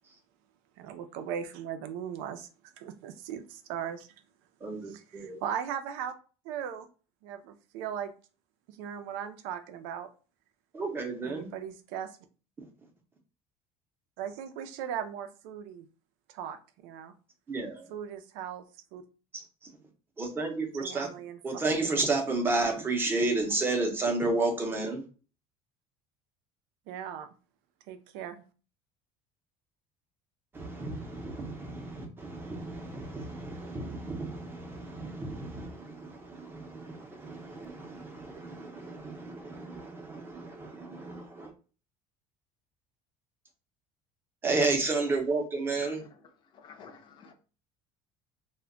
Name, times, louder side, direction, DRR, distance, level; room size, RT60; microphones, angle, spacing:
voice 1, 0.8-2.5 2.8-4.1 4.9-6.1 6.4-6.9 7.2-8.1 8.8-10.1 11.2-12.2 14.2-15.9 16.3-17.1 17.9-18.6 18.9-19.0 20.8-21.4 26.9-27.3 27.9-28.4, right 9 dB, 90° right, 8 dB, 0.4 m, -38 dB
voice 2, 4.6-5.4 10.7-11.5 17.5-17.9 19.3-19.4 20.2-21.1 21.4-25.0 30.5-41.5 44.4-46.0, right 3 dB, 15° right, 3 dB, 0.6 m, -32 dB
voice 3, 46.5-47.3, left 6 dB, 35° left, 4 dB, 0.5 m, -49 dB
2.1 x 2.1 x 3.6 m, 0.36 s
cardioid pair, 165°, 14 cm